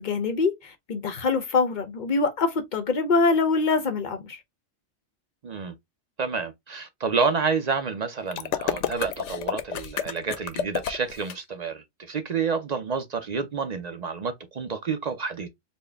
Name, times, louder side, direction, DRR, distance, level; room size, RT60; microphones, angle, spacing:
voice 1, 0.0-4.4, left 4 dB, 50° left, 0.6 m, -24 dB
voice 2, 5.4-5.7 6.2-15.5, right 5 dB, 50° right, 0.5 m, -29 dB
sound 1, 8.3-11.3, left 9 dB, 80° left, 0.9 m, -30 dB
4.3 x 2.1 x 3.3 m
omnidirectional pair, 1.2 m